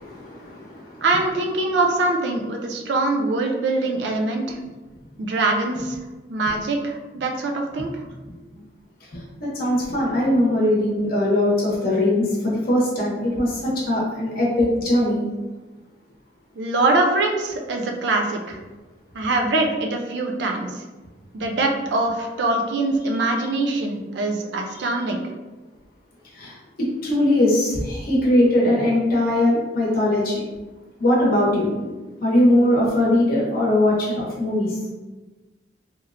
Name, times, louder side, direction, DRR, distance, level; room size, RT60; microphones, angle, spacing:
voice 1, 0.0-1.0 8.3-8.4 9.1-15.2 24.8-24.9 26.3-30.4 31.0-31.9 32.2-34.8, left 1 dB, 55° left, -4 dB, 0.7 m, -21 dB
voice 2, 1.0-4.6 5.2-6.0 6.3-7.9 16.6-18.6 19.1-20.8 21.3-25.3, right 2 dB, 75° right, 2 dB, 0.4 m, -23 dB
2.9 x 2.0 x 2.5 m, 1.2 s
head